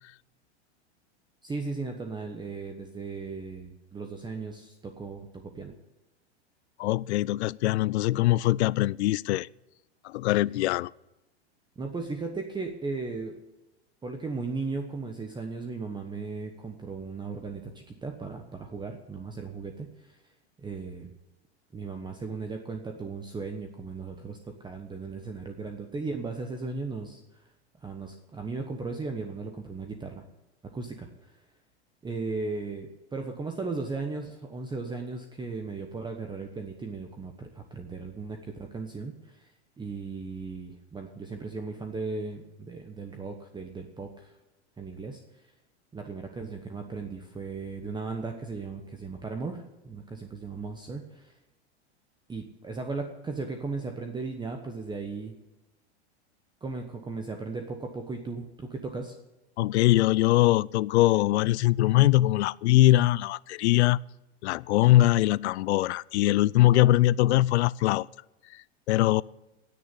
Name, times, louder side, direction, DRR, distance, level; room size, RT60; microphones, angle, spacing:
voice 1, 1.4-5.7 11.8-13.4 14.0-20.2 20.6-21.1 21.7-27.4 27.8-30.2 30.6-31.3 32.0-39.5 39.8-44.3 44.8-45.5 45.9-51.3 52.3-55.4 56.6-59.2, right 4 dB, 15° right, 4 dB, 1.1 m, -36 dB
voice 2, 6.8-9.5 10.0-10.9 59.6-64.0 64.4-68.1 68.5-69.2, left 16 dB, 75° left, 22 dB, 0.5 m, -22 dB
17.5 x 6.8 x 8.4 m, 0.97 s
hypercardioid pair, 120°, 34 cm